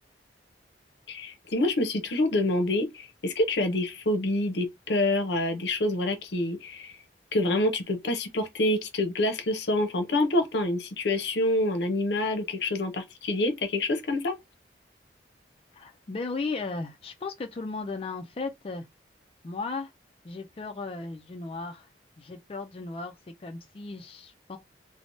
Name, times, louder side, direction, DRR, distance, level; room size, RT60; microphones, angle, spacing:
voice 1, 1.1-6.9 7.3-14.3, left 1 dB, 75° left, 0.7 m, -27 dB
voice 2, 15.7-18.9 19.4-19.9 20.2-21.9 22.2-24.6, left 3 dB, 30° left, 0.3 m, -36 dB
3.3 x 2.0 x 2.6 m
head